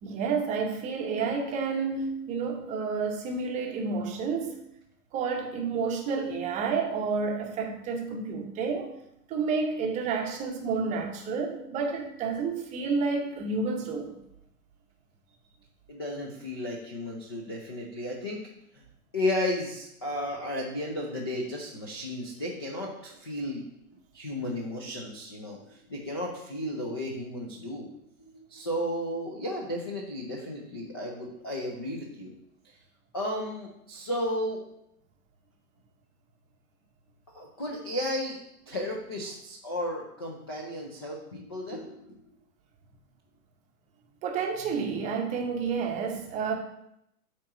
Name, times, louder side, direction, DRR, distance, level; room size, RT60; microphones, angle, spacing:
voice 1, 0.0-4.6 5.1-8.9 9.3-14.1 44.2-46.5, right 5 dB, 15° right, 0.7 m, -30 dB
voice 2, 15.9-18.4 19.1-23.6 24.1-27.9 28.3-32.3 33.1-34.6 37.3-38.4 38.7-42.2, left 1 dB, 20° left, 0.3 m, -33 dB
8.4 x 3.0 x 5.9 m
figure-of-eight pair, 115°, 45 cm